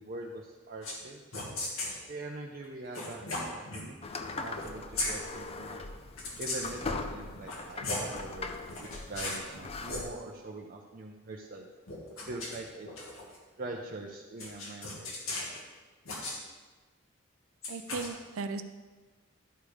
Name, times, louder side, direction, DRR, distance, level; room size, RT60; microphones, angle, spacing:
voice 1, 0.0-1.4 2.1-5.8 6.4-11.7 12.3-12.9 13.6-15.1, right 2 dB, 45° right, -1 dB, 0.6 m, -43 dB
sound 1, 0.8-1.0 1.3-2.0 2.9-3.9 4.5-5.1 6.2-6.8 7.3-8.2 8.7-9.5 9.8-10.0 11.9-13.4 14.4-15.6 16.1-16.4 17.6-18.1, left 2 dB, 90° left, 1.9 m, -37 dB
sound 2, 4.0-10.1, left 3 dB, 30° left, 0.5 m, -40 dB
voice 2, 17.7-18.6, right 4 dB, 90° right, 8 dB, 0.5 m, -36 dB
11.5 x 5.2 x 5.0 m, 1.3 s
head